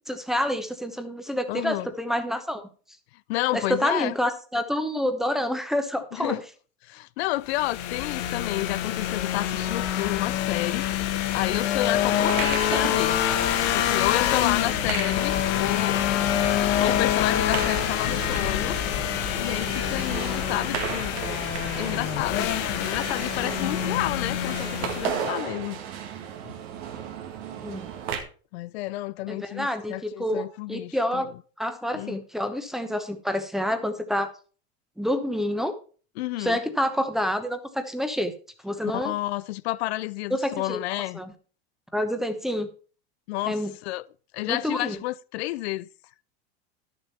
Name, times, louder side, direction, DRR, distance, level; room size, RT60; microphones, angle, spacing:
voice 1, 0.1-2.7 3.5-6.4 27.6-27.9 29.3-31.3 31.6-34.3 35.0-35.7 36.4-38.3 38.6-39.1 40.3-40.8 41.1-41.3 41.9-42.7 43.5-43.7 44.5-45.0, equal, ahead, 0.9 m, -28 dB
voice 2, 1.5-1.9 3.3-4.2 6.1-6.4 6.8-10.9 11.3-13.2 13.7-16.0 16.8-18.8 19.4-21.2 21.7-25.8 26.4-26.5 28.5-31.3 31.9-32.2 36.2-36.6 38.8-41.2 43.3-44.1 44.3-45.9, left 18 dB, 80° left, 0.5 m, -30 dB
sound 1, 7.5-25.3, left 11 dB, 50° left, 1.2 m, -26 dB
sound 2, 12.0-28.2, right 8 dB, 75° right, 1.9 m, -35 dB
11.5 x 6.8 x 4.2 m
supercardioid pair, 135°, 32 cm